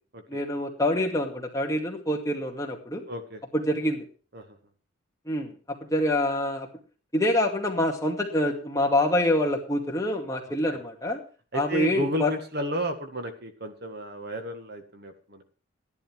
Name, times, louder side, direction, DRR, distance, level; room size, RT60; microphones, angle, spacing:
voice 1, 0.3-3.0 3.5-4.1 5.3-6.7 7.1-11.2 11.5-12.3, left 1 dB, 15° left, 1 dB, 2.3 m, -26 dB
voice 2, 3.1-3.4 4.3-4.6 11.5-15.4, equal, 50° right, 7 dB, 1.8 m, -32 dB
14.5 x 11.0 x 4.6 m, 0.37 s
head